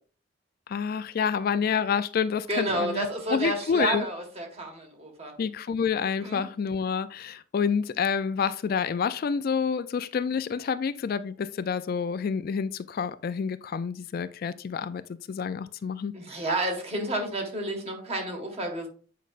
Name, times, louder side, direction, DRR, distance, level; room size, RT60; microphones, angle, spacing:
voice 1, 0.7-4.1 5.4-16.4, left 6 dB, 50° left, 0.3 m, -28 dB
voice 2, 2.5-5.3 6.2-6.5 16.1-18.9, right 2 dB, 30° right, 1.6 m, -30 dB
8.4 x 5.0 x 2.5 m
head